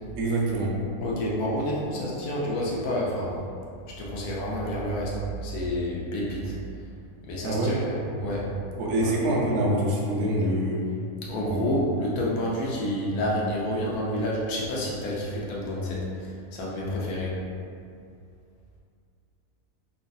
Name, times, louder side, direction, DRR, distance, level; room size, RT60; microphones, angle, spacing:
voice 1, 0.2-0.7 7.4-7.7 8.8-10.8 11.4-12.0, right 1 dB, 70° right, -3 dB, 0.7 m, -25 dB
voice 2, 1.0-3.4 3.9-6.5 7.2-8.5 9.0-9.2 11.2-17.4, left 1 dB, 80° left, -4 dB, 1.1 m, -29 dB
3.1 x 2.1 x 2.5 m, 2.4 s
omnidirectional pair, 1.7 m